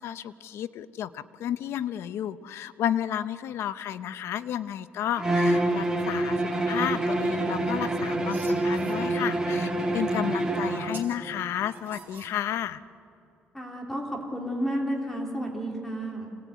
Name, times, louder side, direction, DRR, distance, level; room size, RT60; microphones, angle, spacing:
voice 1, 0.0-12.8, left 10 dB, 80° left, 14 dB, 0.7 m, -32 dB
Bowed string instrument, 5.2-11.0, right 1 dB, 15° right, 2.4 m, -26 dB
sound 1, 7.8-9.0 10.1-10.2 10.7-11.2 11.7-12.7, right 6 dB, 50° right, 3.9 m, -47 dB
voice 2, 13.5-16.3, equal, 5° left, 0 dB, 3.1 m, -31 dB
25.5 x 19.0 x 9.4 m, 2.8 s
cardioid pair, 150°, 4 cm